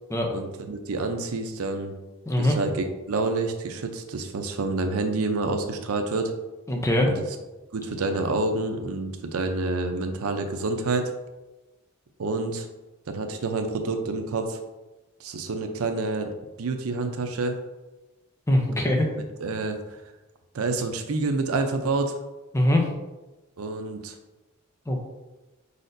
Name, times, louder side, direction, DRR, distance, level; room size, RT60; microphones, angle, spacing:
voice 1, 0.3-1.9 2.4-6.3 7.1-7.2 7.7-11.1 12.2-12.7 13.1-14.6 15.2-16.3 16.6-17.6 19.4-20.0 20.5-22.2 23.6-24.2, right 3 dB, 85° right, 6 dB, 0.5 m, -28 dB
voice 2, 2.3-2.6 6.7-7.1 18.5-19.1 22.5-22.9 24.9-25.0, left 1 dB, 15° left, 1 dB, 0.5 m, -22 dB
5.0 x 4.1 x 2.6 m, 1.1 s
head